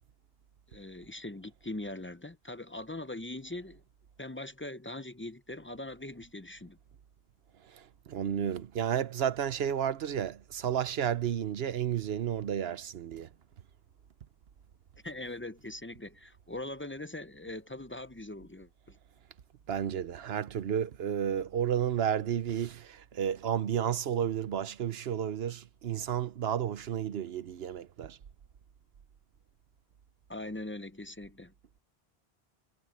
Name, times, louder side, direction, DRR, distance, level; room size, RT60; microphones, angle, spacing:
voice 1, 0.7-3.8 4.2-6.8 15.0-19.0 30.3-31.5, left 2 dB, 15° left, 0.4 m, -41 dB
voice 2, 8.1-13.3 19.7-28.2, right 9 dB, 75° right, 1.0 m, -32 dB
omnidirectional pair, 1.0 m